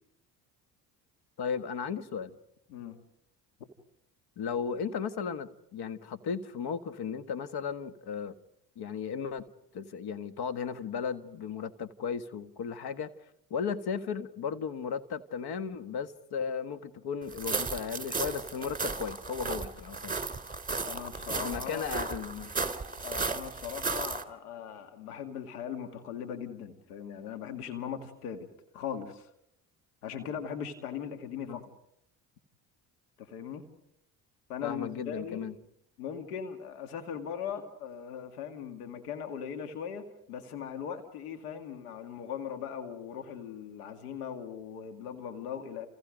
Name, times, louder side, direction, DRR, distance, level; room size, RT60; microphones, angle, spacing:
voice 1, 1.4-2.4 4.4-8.4 8.8-9.4 9.7-13.1 13.5-20.2 21.4-22.5 31.5-31.6 34.6-35.5, left 6 dB, 55° left, 1.7 m, -35 dB
sound 1, 17.3-24.2, right 4 dB, 20° right, 3.1 m, -35 dB
voice 2, 20.8-21.9 23.0-28.5 28.7-29.3 30.0-31.6 33.2-33.7 34.5-35.4 36.0-45.9, left 8 dB, 85° left, 2.1 m, -39 dB
30.0 x 29.0 x 5.2 m
hypercardioid pair, 60°, 45 cm